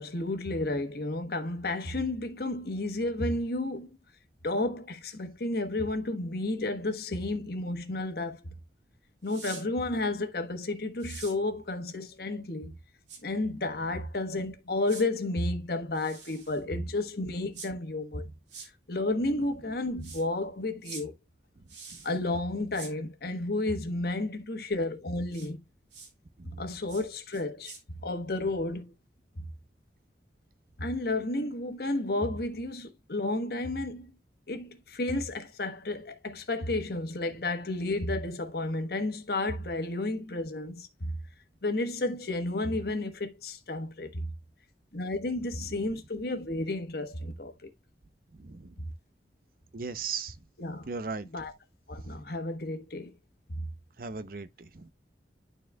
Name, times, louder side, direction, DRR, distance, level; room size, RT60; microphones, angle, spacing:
voice 1, 0.0-3.9 4.4-8.5 9.2-12.8 13.2-18.3 18.9-21.1 22.0-25.6 26.4-27.7 28.0-28.9 29.4-29.5 30.8-34.1 34.5-41.1 41.6-44.3 44.9-47.7 50.6-50.9 51.3-51.5 51.9-53.1 53.5-53.6, left 2 dB, 60° left, 1.3 m, -32 dB
sound 1, 9.2-9.6 11.0-11.4 13.1-13.2 14.9-15.0 15.9-16.6 17.5-17.7 18.5-18.7 20.0-20.2 20.8-21.0 21.7-22.2 22.7-22.9 25.3-25.5 25.9-26.1 26.9-27.0 27.3-27.8, right 5 dB, 75° right, 2.7 m, -45 dB
voice 2, 48.4-48.7 49.7-50.3 50.9-51.3 54.0-54.9, right 5 dB, 50° right, 0.7 m, -37 dB
12.0 x 4.3 x 2.2 m
head